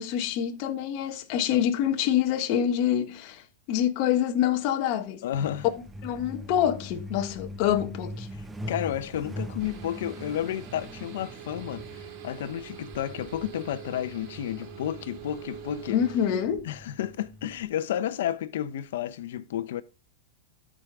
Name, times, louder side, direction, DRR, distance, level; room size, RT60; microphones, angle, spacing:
voice 1, 0.0-3.4 3.7-5.2 6.0-8.3 15.9-16.7, left 10 dB, 45° left, 1.4 m, -26 dB
voice 2, 5.2-5.7 8.3-16.0 16.6-19.8, left 11 dB, 70° left, 1.0 m, -32 dB
Truck, 5.3-17.6, equal, 10° right, 1.1 m, -42 dB
sound 1, 9.6-16.4, right 9 dB, 50° right, 2.9 m, -44 dB
13.0 x 5.2 x 3.8 m
supercardioid pair, 140°, 0 cm